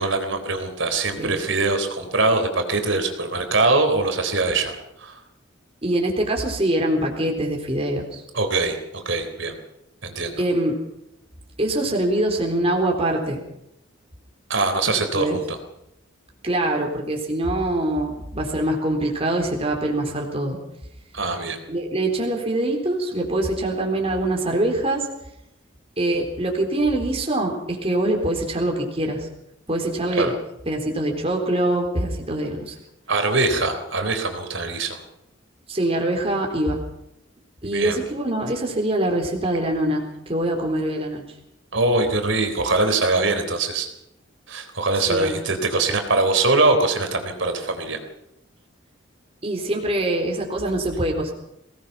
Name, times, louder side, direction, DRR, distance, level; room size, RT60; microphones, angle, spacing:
voice 1, 0.0-5.2 8.3-9.5 10.0-10.4 14.5-15.6 21.1-21.6 30.2-30.3 33.1-35.0 37.7-38.0 41.7-43.9 44.5-48.0, right 3 dB, 70° right, 6 dB, 3.8 m, -22 dB
voice 2, 5.8-8.2 10.4-10.8 11.6-13.4 15.1-15.4 16.4-20.6 21.7-25.1 26.0-29.3 29.7-30.3 30.7-32.7 35.7-36.8 37.6-41.2 45.0-45.4 49.4-51.3, right 1 dB, 30° right, 1 dB, 4.0 m, -24 dB
23.5 x 19.0 x 5.9 m, 0.83 s
head